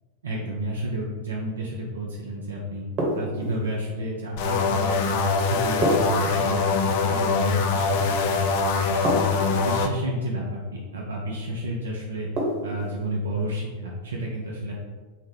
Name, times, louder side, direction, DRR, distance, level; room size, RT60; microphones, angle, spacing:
voice 1, 0.2-2.9 3.1-9.2 9.5-12.3 12.6-14.7, right 1 dB, 70° right, -3 dB, 0.4 m, -31 dB
sound 1, 3.0-3.8 5.8-6.9 9.0-9.8 12.4-13.0, right 1 dB, 35° right, 1.0 m, -27 dB
sound 2, 4.4-9.9, left 4 dB, 50° left, 0.3 m, -23 dB
3.8 x 2.0 x 3.7 m, 1.4 s
figure-of-eight pair, 90°, 0 cm